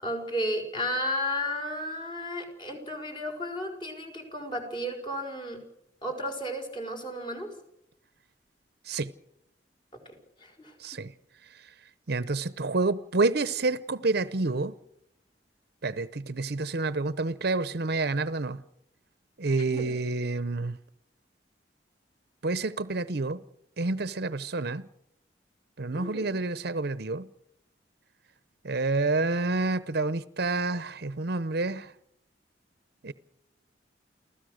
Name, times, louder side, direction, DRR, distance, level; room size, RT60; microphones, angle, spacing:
voice 1, 0.0-5.6 6.0-7.5 10.4-11.0 19.7-19.9 25.9-26.3, equal, 30° left, 5.2 m, -33 dB
voice 2, 10.8-11.1 12.1-14.7 15.8-18.6 19.4-20.8 22.4-23.4 23.8-24.9 25.8-27.3 28.6-31.9 33.0-33.1, right 3 dB, 65° right, 0.9 m, -28 dB
29.0 x 16.0 x 6.5 m
head